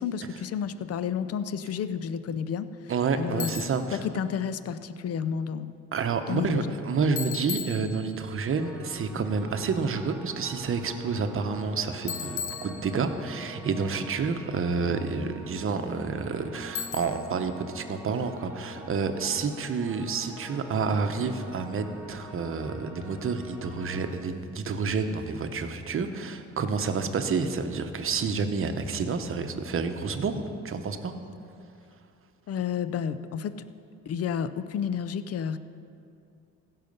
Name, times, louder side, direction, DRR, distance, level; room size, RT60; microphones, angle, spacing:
voice 1, 0.0-3.5 3.9-5.7 6.3-6.7 32.5-33.6 34.1-35.6, left 7 dB, 55° left, 13 dB, 0.5 m, -31 dB
voice 2, 2.9-4.0 5.9-31.1, right 5 dB, 45° right, 7 dB, 0.9 m, -29 dB
Bicycle, 3.4-3.9 7.2-8.4 12.1-13.3 16.7-17.4, left 7 dB, 75° left, 0.9 m, -36 dB
sound 1, 8.5-24.1, right 1 dB, 5° right, 1.5 m, -45 dB
16.0 x 5.8 x 5.4 m, 2.6 s
cardioid pair, 90°, 30 cm